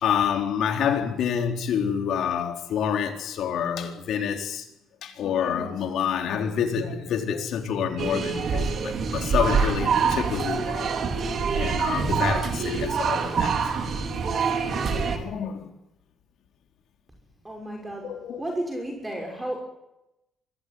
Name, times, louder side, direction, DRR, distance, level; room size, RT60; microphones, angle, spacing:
voice 1, 0.0-4.7 5.0-14.1 14.9-15.7 17.9-18.5, left 8 dB, 75° left, 4.0 m, -28 dB
sound 1, 8.0-15.2, right 5 dB, 60° right, 3.5 m, -25 dB
voice 2, 17.4-19.6, right 1 dB, 15° right, 5.8 m, -33 dB
25.0 x 16.5 x 9.8 m
cardioid pair, 90°, 0 cm